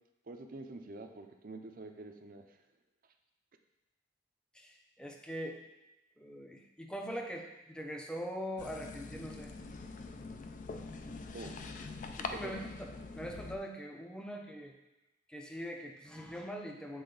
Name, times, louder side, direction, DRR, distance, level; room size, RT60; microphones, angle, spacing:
voice 1, 0.3-2.6 11.3-11.5 12.3-12.5, right 2 dB, 50° right, 5 dB, 0.5 m, -46 dB
voice 2, 4.5-5.6 6.2-9.5 12.2-12.9 13.1-14.7 15.3-17.0, equal, 5° left, 1 dB, 0.6 m, -42 dB
sound 1, 8.6-13.6, left 3 dB, 45° left, 0.4 m, -44 dB
7.8 x 3.7 x 3.9 m, 0.96 s
head